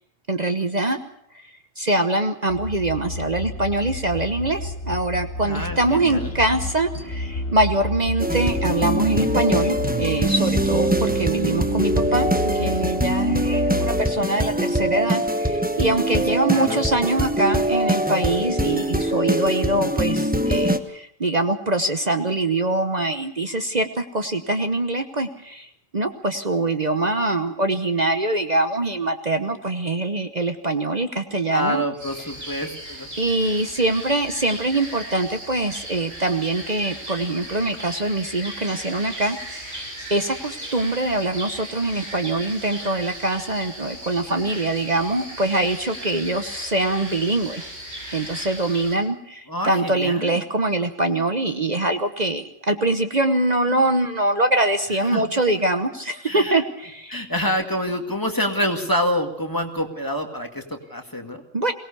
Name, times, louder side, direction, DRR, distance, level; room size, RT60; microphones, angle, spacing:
voice 1, 0.3-1.0 1.8-31.8 33.2-47.6 48.1-57.2 61.5-61.7, right 2 dB, 35° right, 7 dB, 1.1 m, -23 dB
sound 1, 2.5-14.0, left 2 dB, 55° left, 3.0 m, -30 dB
voice 2, 5.4-6.3 16.5-16.8 31.5-33.1 49.5-50.4 55.0-55.2 56.3-56.6 57.1-61.4, equal, 15° left, 4 dB, 2.1 m, -27 dB
sound 2, 8.2-20.8, right 1 dB, 10° right, 1.0 m, -23 dB
sound 3, 32.0-49.0, right 1 dB, 55° right, 7.5 m, -37 dB
23.0 x 18.5 x 7.0 m, 0.70 s
omnidirectional pair, 1.3 m